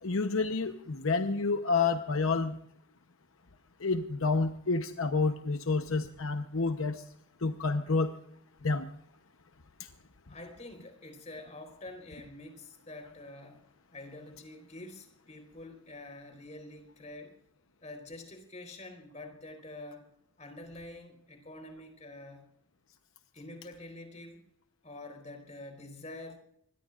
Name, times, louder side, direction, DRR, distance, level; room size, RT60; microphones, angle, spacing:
voice 1, 0.0-2.6 3.8-7.0 7.4-8.1 8.6-8.9, left 4 dB, 80° left, 7 dB, 1.0 m, -29 dB
voice 2, 10.3-13.6 13.9-17.4 17.8-22.5 23.3-24.4 24.8-26.4, left 2 dB, 35° left, 5 dB, 4.3 m, -47 dB
24.5 x 21.0 x 2.5 m, 0.70 s
head